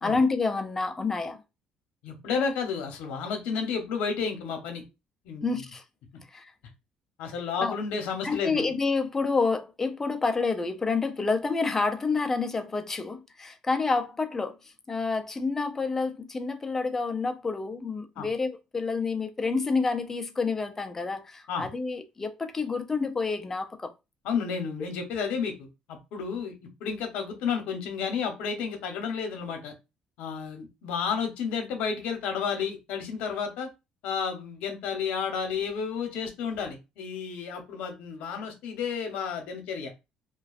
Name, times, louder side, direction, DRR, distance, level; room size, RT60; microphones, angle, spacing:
voice 1, 0.0-1.4 5.4-5.8 6.3-6.5 7.6-7.8 8.2-23.9, left 4 dB, 15° left, 0.4 m, -28 dB
voice 2, 2.0-4.8 5.2-5.6 7.2-8.7 18.2-18.3 21.5-21.7 24.2-26.5 26.8-29.7 30.2-33.7 34.0-39.9, left 6 dB, 85° left, 0.8 m, -31 dB
2.4 x 2.2 x 2.4 m
cardioid pair, 145°, 2 cm